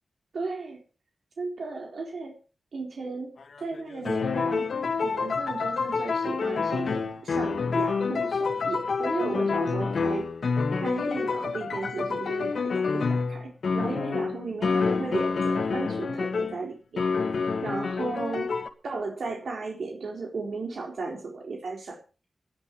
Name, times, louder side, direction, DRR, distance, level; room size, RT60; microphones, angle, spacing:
voice 1, 0.3-0.8 1.4-2.3 2.7-4.7 5.0-10.3 10.7-17.3 17.6-18.5 18.8-22.0, right 3 dB, 70° right, 1 dB, 4.0 m, -35 dB
sound 1, 3.4-16.6 17.0-18.7, left 4 dB, 65° left, 2.0 m, -28 dB
18.5 x 11.0 x 4.7 m, 0.35 s
wide cardioid pair, 115°, 0 cm